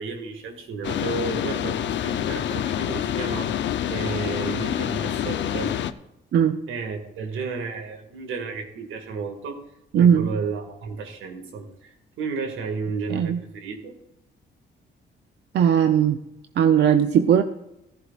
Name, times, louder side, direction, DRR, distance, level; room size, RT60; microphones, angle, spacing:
voice 1, 0.0-3.5 3.9-5.7 6.7-9.6 10.0-13.9, right 4 dB, 80° right, 5 dB, 2.0 m, -32 dB
sound 1, 0.8-5.9, left 10 dB, 65° left, 0.7 m, -27 dB
voice 2, 9.9-10.3 13.1-13.4 15.5-16.2 16.6-17.4, right 8 dB, 60° right, 8 dB, 0.7 m, -18 dB
14.5 x 14.5 x 2.5 m, 0.88 s
cardioid pair, 90°, 20 cm